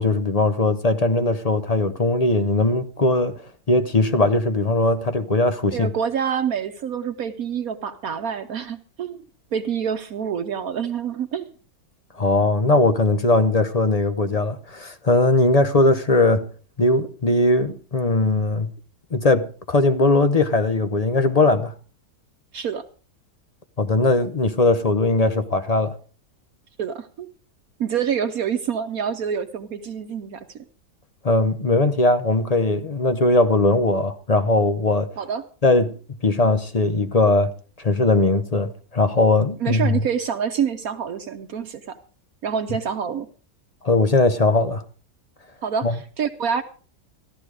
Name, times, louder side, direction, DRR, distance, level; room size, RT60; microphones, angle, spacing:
voice 1, 0.0-3.4 3.7-5.9 12.2-16.5 16.8-18.7 19.1-21.7 23.8-25.9 31.2-35.1 35.6-35.9 36.2-37.5 37.8-40.0 43.8-44.8 45.8-45.9, left 2 dB, 40° left, 0.5 m, -19 dB
voice 2, 5.7-9.2 9.5-11.5 22.5-22.8 26.8-27.3 27.8-30.6 35.2-35.4 39.6-42.0 42.4-43.3 45.6-46.6, right 7 dB, 65° right, 1.2 m, -27 dB
14.5 x 12.0 x 4.8 m
omnidirectional pair, 1.7 m